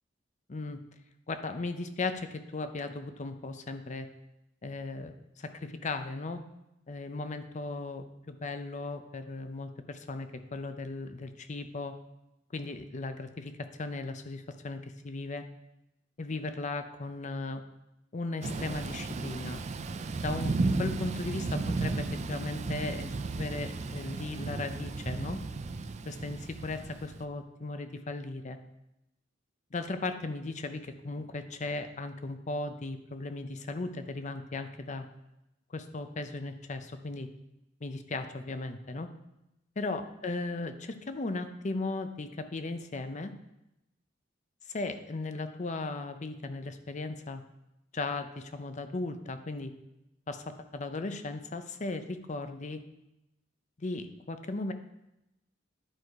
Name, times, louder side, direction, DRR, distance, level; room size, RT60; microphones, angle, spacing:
voice 1, 0.5-0.8 1.3-4.1 4.6-6.4 6.9-11.9 12.5-15.4 16.2-17.6 18.1-19.6 20.2-25.4 26.1-28.6 29.7-35.1 35.7-37.3 37.8-39.1 39.8-43.3 44.7-47.4 47.9-49.7 50.3-52.8 53.8-54.7, left 3 dB, 40° left, 8 dB, 0.6 m, -37 dB
Thunder / Rain, 18.4-27.2, right 3 dB, 35° right, 0.4 m, -34 dB
10.5 x 4.7 x 4.7 m, 0.90 s
head